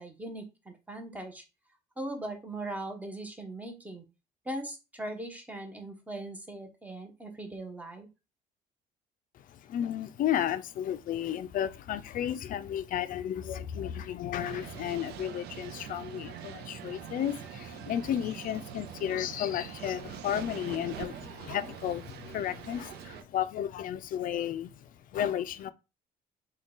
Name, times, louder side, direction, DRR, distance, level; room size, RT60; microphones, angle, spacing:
voice 1, 0.0-1.4 2.0-4.0 4.5-8.1, right 1 dB, 10° right, 0.9 m, -39 dB
voice 2, 9.5-25.7, left 10 dB, 55° left, 0.4 m, -33 dB
sound 1, 14.4-23.2, right 10 dB, 75° right, 0.5 m, -44 dB
3.7 x 2.3 x 3.8 m
cardioid pair, 110°, 17 cm